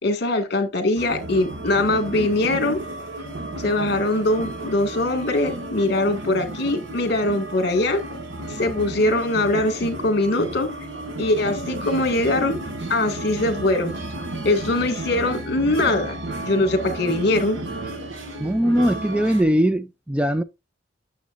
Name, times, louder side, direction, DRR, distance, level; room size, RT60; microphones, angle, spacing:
voice 1, 0.0-2.8 3.6-8.0 8.6-10.7 11.2-12.6 12.9-13.9 14.4-16.2 16.4-17.6, left 2 dB, 55° left, 1.9 m, -22 dB
sound 1, 1.0-19.4, right 1 dB, 70° right, 1.7 m, -33 dB
voice 2, 18.4-20.4, equal, 5° right, 0.3 m, -20 dB
9.2 x 7.1 x 2.5 m
head